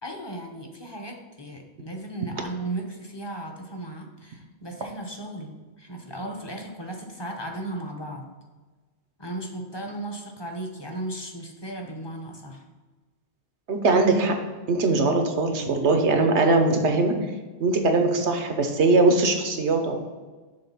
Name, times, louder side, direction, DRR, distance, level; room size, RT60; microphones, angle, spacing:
voice 1, 0.0-8.3 9.2-12.6, right 1 dB, 25° left, 2 dB, 0.9 m, -36 dB
voice 2, 13.7-14.3 14.7-17.1 17.6-20.0, right 3 dB, 80° right, 5 dB, 1.2 m, -21 dB
6.8 x 3.8 x 5.6 m, 1.3 s
omnidirectional pair, 1.1 m